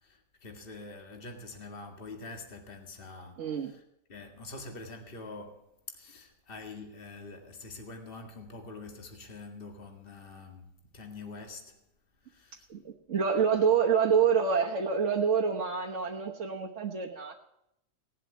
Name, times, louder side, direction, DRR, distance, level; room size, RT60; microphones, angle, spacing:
voice 1, 0.0-3.8 4.1-11.8 12.2-12.7, left 3 dB, 35° left, 2.2 m, -45 dB
voice 2, 3.4-3.7 12.7-17.4, right 6 dB, 45° right, 1.5 m, -27 dB
18.0 x 7.6 x 9.4 m
omnidirectional pair, 1.8 m